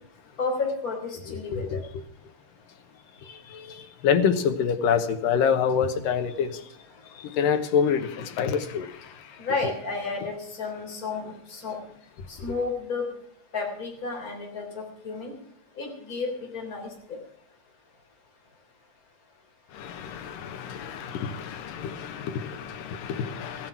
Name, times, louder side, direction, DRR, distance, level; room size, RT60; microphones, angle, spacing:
voice 1, 0.4-1.6 9.4-11.8 12.4-13.1 13.5-15.3 15.8-17.2, left 4 dB, 25° left, 3.5 m, -32 dB
voice 2, 1.3-1.8 3.2-6.7 7.1-9.4 19.7-23.7, left 7 dB, 80° left, 2.8 m, -27 dB
15.5 x 9.7 x 6.0 m
omnidirectional pair, 3.9 m